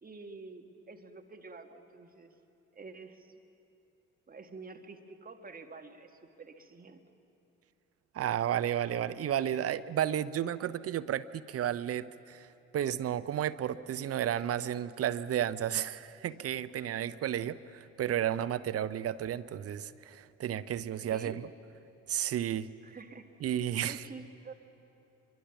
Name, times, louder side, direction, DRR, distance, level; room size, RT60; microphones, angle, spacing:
voice 1, 0.0-2.3 2.7-3.4 4.3-7.0 21.1-21.4 22.8-23.3 23.8-24.5, right 4 dB, 25° right, 6 dB, 1.9 m, -48 dB
voice 2, 8.1-12.5 12.7-21.4 22.1-22.7 23.4-24.0, right 10 dB, 40° right, 14 dB, 0.7 m, -32 dB
25.0 x 23.0 x 6.0 m, 2.8 s
figure-of-eight pair, 50°, 37 cm